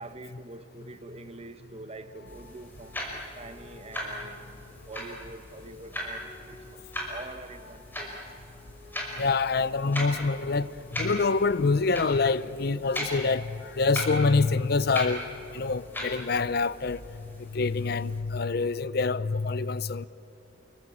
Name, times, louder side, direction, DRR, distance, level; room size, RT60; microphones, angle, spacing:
voice 1, 0.0-8.2 16.2-16.3, right 2 dB, 35° right, 1.2 m, -45 dB
sound 1, 2.0-16.3, left 2 dB, 80° left, 6.7 m, -53 dB
sound 2, 2.2-18.2, equal, 10° left, 5.5 m, -39 dB
voice 2, 9.2-15.2 15.5-17.0 17.4-20.1, left 4 dB, 60° left, 0.6 m, -26 dB
29.0 x 22.5 x 8.7 m
head